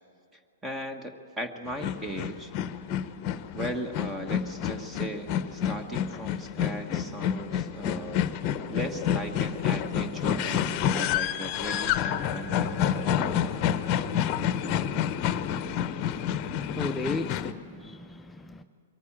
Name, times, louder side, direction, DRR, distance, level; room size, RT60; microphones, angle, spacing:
voice 1, 0.6-2.5 3.5-8.3 8.7-13.4, right 1 dB, 15° right, 1.2 m, -37 dB
sound 1, 1.7-17.5, left 9 dB, 35° left, 0.9 m, -29 dB
voice 2, 16.0-18.6, left 2 dB, 10° left, 0.6 m, -36 dB
23.0 x 14.0 x 8.8 m
figure-of-eight pair, 110°, 0 cm